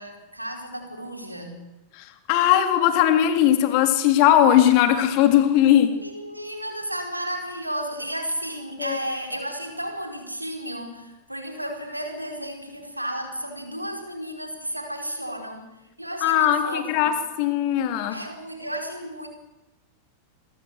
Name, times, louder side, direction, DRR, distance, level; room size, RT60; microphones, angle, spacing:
voice 1, 0.0-1.7 5.9-17.1 18.1-19.3, right 1 dB, 90° right, 4.6 m, -33 dB
voice 2, 2.0-6.0 8.8-9.0 16.2-17.1 17.4-18.2, left 11 dB, 45° left, 3.4 m, -19 dB
27.0 x 22.5 x 6.7 m
figure-of-eight pair, 90°, 0 cm